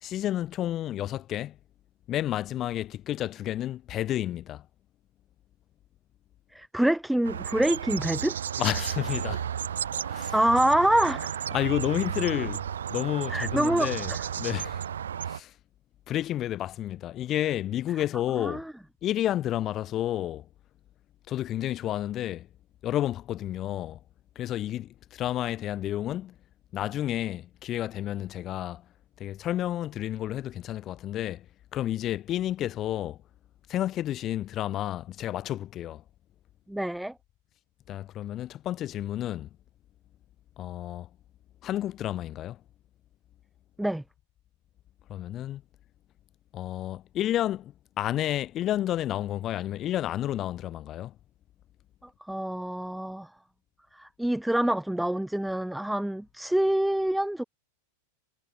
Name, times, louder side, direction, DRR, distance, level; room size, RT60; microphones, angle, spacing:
voice 1, 0.0-1.6 2.1-4.6 8.6-9.5 10.1-10.3 11.5-12.6 12.9-14.9 15.2-15.5 16.1-18.6 19.0-20.5 21.3-22.5 22.8-24.0 24.4-26.4 26.7-28.8 29.2-31.5 31.7-33.2 33.7-36.0 37.9-39.5 40.6-41.1 41.6-42.6 45.1-45.6 46.5-51.1, left 12 dB, 30° left, 2.0 m, -31 dB
voice 2, 6.5-8.4 10.3-11.4 13.3-14.2 18.3-18.7 36.7-37.1 43.8-44.0 52.3-53.3 53.9-57.4, right 1 dB, ahead, 0.8 m, -26 dB
sound 1, 7.2-15.4, right 8 dB, 65° right, 0.9 m, -33 dB
figure-of-eight pair, 90°, 0 cm